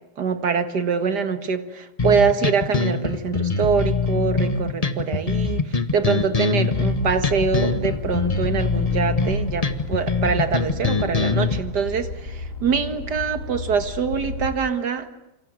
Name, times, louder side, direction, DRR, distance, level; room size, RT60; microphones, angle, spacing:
voice 1, 0.2-15.1, right 6 dB, 50° right, 9 dB, 2.2 m, -24 dB
sound 1, 2.0-11.6, left 4 dB, 20° left, 1.0 m, -23 dB
sound 2, 6.9-14.5, left 4 dB, 60° left, 5.7 m, -32 dB
27.5 x 26.0 x 7.7 m, 0.93 s
omnidirectional pair, 2.4 m